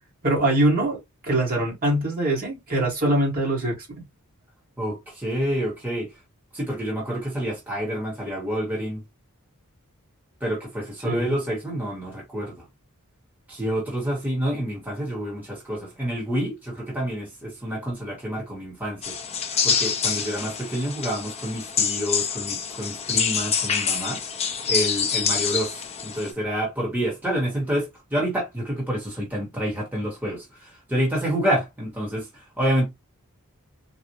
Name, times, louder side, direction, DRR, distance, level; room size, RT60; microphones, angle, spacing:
voice 1, 0.2-1.0 1.2-3.9 11.0-11.3, right 1 dB, 40° right, 1.6 m, -23 dB
voice 2, 4.8-6.1 6.5-9.0 10.4-12.6 13.5-19.1 19.6-24.2 24.7-32.9, equal, 10° right, 1.1 m, -28 dB
sound 1, 19.0-26.3, left 6 dB, 30° left, 0.5 m, -26 dB
4.1 x 2.1 x 2.8 m
head